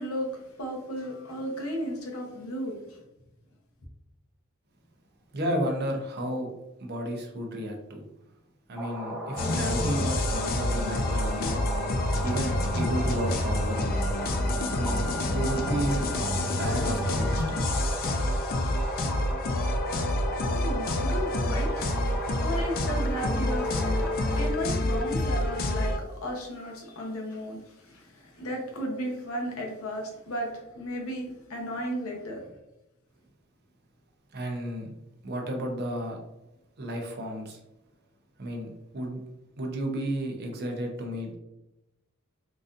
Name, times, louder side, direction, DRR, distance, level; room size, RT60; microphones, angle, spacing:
voice 1, 0.0-3.0 20.4-32.5, equal, 85° left, 0 dB, 0.9 m, -35 dB
voice 2, 5.3-6.5 6.8-8.0 8.7-11.6 12.2-14.0 14.7-16.0 16.6-17.6 34.3-34.9 35.2-36.2 36.8-37.6 38.4-39.2 39.6-41.4, right 1 dB, 50° right, 1 dB, 0.7 m, -32 dB
sound 1, 8.8-24.5, equal, 5° right, 0.7 m, -36 dB
sound 2, 9.4-26.0, left 1 dB, 45° left, 0.4 m, -28 dB
3.9 x 2.6 x 2.5 m, 0.93 s
head